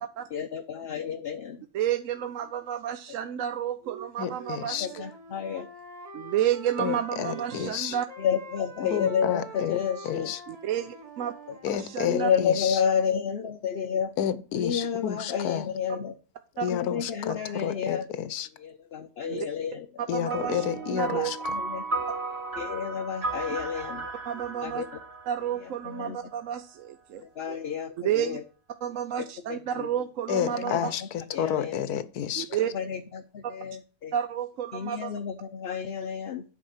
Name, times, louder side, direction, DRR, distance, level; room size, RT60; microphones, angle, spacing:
voice 1, 0.3-1.6 4.8-5.7 8.2-10.3 11.5-11.6 12.1-14.1 14.5-16.1 16.7-18.1 18.6-19.9 21.1-21.8 22.6-24.1 24.6-24.9 25.6-26.2 27.2-28.4 29.5-29.9 30.5-31.7 32.6-34.1 34.7-36.4, left 7 dB, 55° left, 0.7 m, -30 dB
voice 2, 1.7-5.0 6.1-8.1 10.5-11.3 11.8-12.3 16.6-16.7 19.2-19.5 20.1-21.3 24.3-24.8 25.3-27.6 28.0-28.4 28.8-30.8 32.4-32.7 34.1-35.2, right 10 dB, 65° right, 0.9 m, -30 dB
voice 3, 4.2-4.9 6.8-8.0 8.9-9.8 10.0-10.4 11.6-12.8 14.2-15.7 16.6-18.5 20.1-21.4 30.3-32.5, left 9 dB, 75° left, 1.3 m, -30 dB
Wind instrument woodwind instrument, 4.2-7.7 8.1-12.3, right 2 dB, 25° right, 1.3 m, -45 dB
sound 1, 20.3-26.1, right 3 dB, 40° right, 2.6 m, -35 dB
8.8 x 5.8 x 5.6 m
omnidirectional pair, 1.7 m